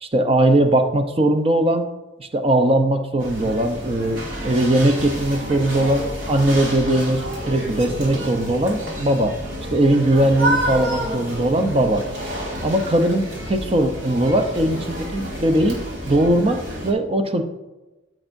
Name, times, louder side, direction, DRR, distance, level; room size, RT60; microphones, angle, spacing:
voice 1, 0.0-1.9 2.2-9.3 9.7-12.0 12.6-15.8 16.1-17.4, right 1 dB, 30° right, 7 dB, 0.7 m, -20 dB
sound 1, 3.2-16.9, right 1 dB, 90° right, 2.4 m, -29 dB
13.5 x 6.1 x 2.6 m, 1.1 s
head